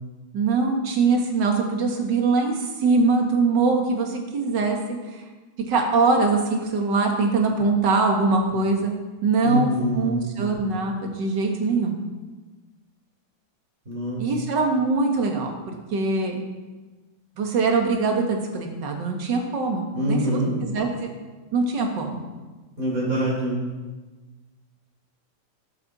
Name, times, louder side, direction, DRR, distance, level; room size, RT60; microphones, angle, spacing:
voice 1, 0.3-4.8 5.7-8.9 9.2-12.0 14.2-16.4 17.4-21.1 21.5-22.2, right 3 dB, 40° right, 2 dB, 1.8 m, -22 dB
voice 2, 9.4-10.3 13.8-14.2 19.9-20.5 22.8-23.6, right 1 dB, 25° right, -5 dB, 5.1 m, -25 dB
13.0 x 12.0 x 4.2 m, 1.3 s
omnidirectional pair, 3.6 m